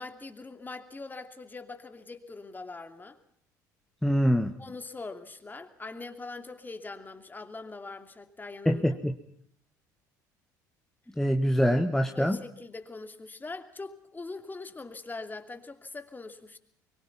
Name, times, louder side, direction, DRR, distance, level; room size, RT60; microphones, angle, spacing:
voice 1, 0.0-3.2 4.6-8.8 12.1-16.6, left 3 dB, 20° left, 2.7 m, -42 dB
voice 2, 4.0-4.5 8.6-9.1 11.2-12.4, equal, 5° left, 1.6 m, -24 dB
24.0 x 22.5 x 5.7 m
hypercardioid pair, 60°, 10 cm